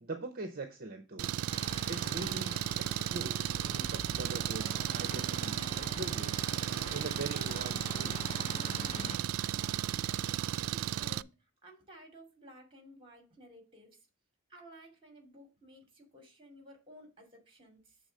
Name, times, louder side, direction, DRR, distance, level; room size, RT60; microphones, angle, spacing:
voice 1, 0.0-1.3 1.9-6.4 6.9-8.2, right 2 dB, 45° right, 0.7 m, -42 dB
Engine, 1.2-11.2, right 11 dB, 85° right, 0.3 m, -34 dB
sound 1, 1.5-9.2, left 3 dB, 30° left, 0.6 m, -46 dB
voice 2, 9.5-14.1 14.5-18.0, equal, 25° right, 2.5 m, -55 dB
7.0 x 3.6 x 6.3 m
head